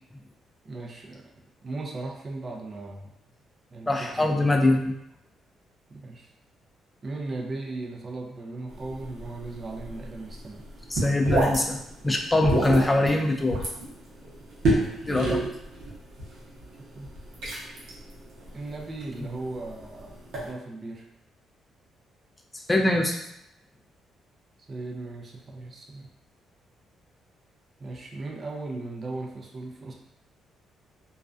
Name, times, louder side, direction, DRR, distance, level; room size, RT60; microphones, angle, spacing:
voice 1, 0.6-1.3 1.6-3.1 3.7-4.4 4.6-4.8 5.9-6.3 7.0-10.6 15.2-15.5 17.0-17.1 18.5-20.2 20.4-21.1 24.7-26.1 27.8-29.9, right 2 dB, 40° right, 0 dB, 0.5 m, -37 dB
voice 2, 3.9-4.9 10.9-13.6 15.1-15.4 22.7-23.2, left 2 dB, 15° left, 2 dB, 0.4 m, -23 dB
sound 1, 8.7-20.5, right 2 dB, 85° right, 0.7 m, -31 dB
2.4 x 2.2 x 2.4 m, 0.82 s
cardioid pair, 90°, 0 cm